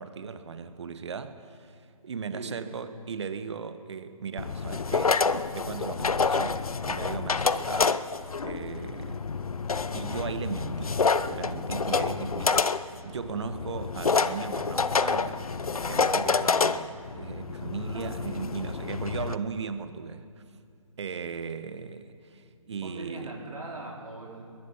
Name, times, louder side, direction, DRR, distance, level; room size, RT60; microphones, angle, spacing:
voice 1, 0.0-1.3 2.0-5.1 5.5-6.6 6.9-8.0 8.4-9.2 9.9-10.9 11.2-12.6 13.0-20.2 21.0-22.0 22.7-23.3, right 6 dB, 50° right, 10 dB, 1.5 m, -37 dB
sound 1, 4.4-19.4, left 4 dB, 80° left, 0.8 m, -28 dB
voice 2, 17.7-18.1 22.8-24.4, right 2 dB, 85° right, -3 dB, 4.6 m, -40 dB
22.0 x 21.5 x 5.8 m, 2.4 s
figure-of-eight pair, 150°, 18 cm